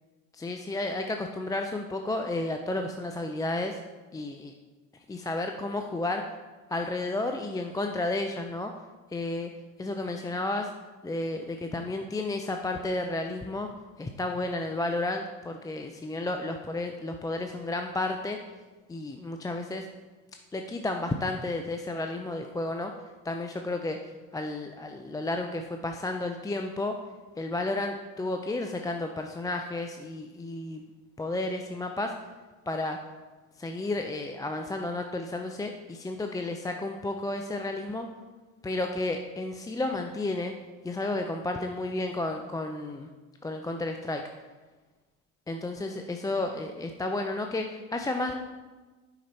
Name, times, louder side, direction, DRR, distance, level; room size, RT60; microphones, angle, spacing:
voice 1, 0.3-3.8 4.1-4.5 5.1-6.2 6.7-8.7 9.1-9.5 9.8-10.7 11.0-13.7 14.0-18.4 18.9-19.9 20.5-22.9 23.2-24.0 24.3-26.9 27.4-30.8 31.2-32.1 32.7-33.0 33.6-38.1 38.6-40.5 40.8-43.1 43.4-44.2 45.5-48.3, left 2 dB, 10° left, 4 dB, 0.4 m, -32 dB
7.3 x 5.8 x 4.2 m, 1.3 s
hypercardioid pair, 75°, 38 cm